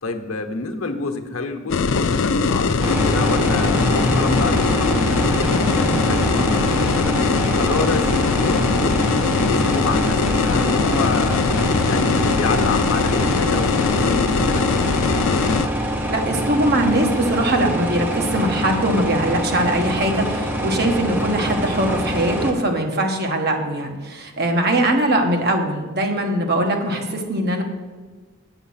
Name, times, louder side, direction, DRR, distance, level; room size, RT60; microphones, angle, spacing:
voice 1, 0.0-5.1 5.4-7.2 7.5-11.4 11.9-15.4, left 3 dB, 85° left, 6 dB, 0.9 m, -28 dB
sound 1, 1.7-15.7, left 4 dB, 65° left, 0.5 m, -21 dB
sound 2, 2.8-22.5, equal, 10° right, 0.9 m, -24 dB
voice 2, 16.1-27.6, right 1 dB, 50° right, 3 dB, 1.3 m, -21 dB
8.1 x 7.3 x 5.7 m, 1.4 s
head